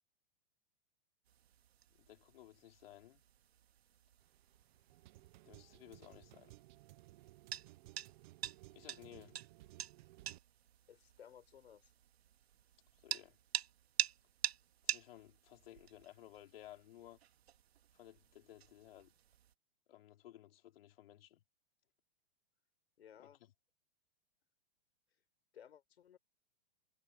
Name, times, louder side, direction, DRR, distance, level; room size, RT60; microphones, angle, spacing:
sound 1, 1.3-19.5, right 10 dB, 85° right, 2.0 m, -47 dB
voice 1, 1.9-3.2 5.4-6.5 8.7-9.4 13.0-13.4 14.8-17.2 17.9-19.1 19.9-21.4 23.2-23.3, left 13 dB, 65° left, 4.7 m, -57 dB
sound 2, 4.2-10.4, right 18 dB, 50° right, 0.8 m, -59 dB
voice 2, 10.9-11.9 23.0-23.4 25.5-26.2, left 9 dB, 90° left, 4.6 m, -58 dB
hypercardioid pair, 140°, 31 cm